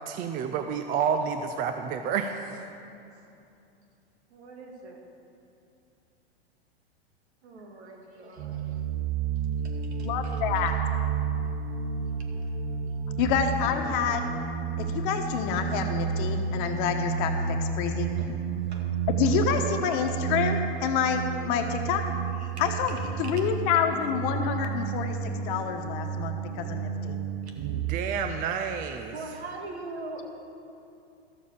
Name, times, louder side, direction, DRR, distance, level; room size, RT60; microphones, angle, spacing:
voice 1, 0.1-2.6 27.6-29.1, right 7 dB, 25° right, 7 dB, 0.5 m, -30 dB
voice 2, 4.3-5.0 7.4-8.8 9.6-10.8 12.2-12.6 18.2-18.3 18.6-18.9 19.4-19.9 22.3-22.6 22.9-23.5 28.2-28.4 29.1-30.3, right 3 dB, 80° right, 1 dB, 2.2 m, -43 dB
sound 1, 8.4-28.0, right 6 dB, 45° right, 0.9 m, -31 dB
voice 3, 10.0-10.7 13.2-14.3 14.8-18.2 19.1-22.1 22.6-27.2, left 7 dB, 50° left, 5 dB, 1.2 m, -28 dB
13.0 x 7.3 x 6.7 m, 2.7 s
hypercardioid pair, 120°, 32 cm